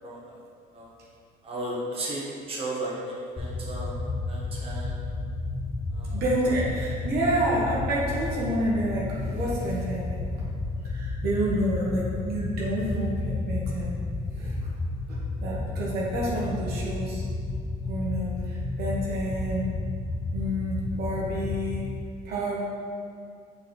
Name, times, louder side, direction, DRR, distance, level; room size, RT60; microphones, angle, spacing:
voice 1, 0.0-0.4 0.7-0.9 1.4-3.9 4.3-4.9 5.9-6.2, right 1 dB, 35° right, -6 dB, 1.4 m, -35 dB
sound 1, 3.4-21.8, left 2 dB, 25° left, 0.6 m, -32 dB
voice 2, 6.1-10.4 10.9-14.0 14.3-14.7 15.4-17.2 17.9-19.7 20.3-21.9 22.2-22.6, right 1 dB, 70° right, -5 dB, 1.3 m, -29 dB
5.6 x 4.4 x 4.0 m, 2.2 s
cardioid pair, 110°, 17 cm